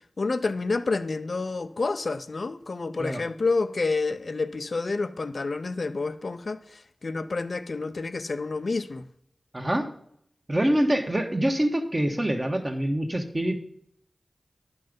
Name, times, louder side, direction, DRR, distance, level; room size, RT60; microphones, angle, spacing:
voice 1, 0.2-6.6 7.0-9.0, left 3 dB, 65° left, 0.5 m, -28 dB
voice 2, 9.5-9.9 10.5-13.6, right 1 dB, 30° right, 1.4 m, -25 dB
11.0 x 5.6 x 5.2 m
cardioid pair, 45°, 0 cm